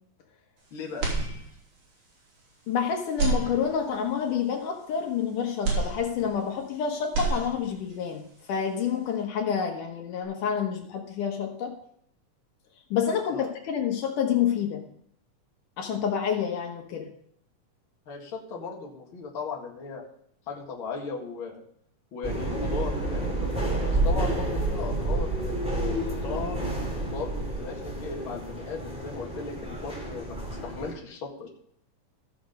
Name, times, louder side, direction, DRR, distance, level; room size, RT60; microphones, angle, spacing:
voice 1, 0.7-1.1 13.3-13.5 18.1-20.1 20.5-21.6 22.1-23.3 23.8-26.6 27.1-31.5, left 4 dB, 45° left, -1 dB, 2.4 m, -37 dB
sound 1, 1.0-1.9 2.3-2.4 3.1-4.1 5.6-6.7 7.0-7.9, right 4 dB, 70° right, 4.6 m, -29 dB
voice 2, 2.7-8.2 8.5-11.8 12.9-14.9 15.8-17.1, left 7 dB, 75° left, 3 dB, 2.8 m, -28 dB
sound 2, 22.2-30.9, right 2 dB, ahead, 2.3 m, -29 dB
14.5 x 6.9 x 5.3 m, 0.68 s
omnidirectional pair, 3.7 m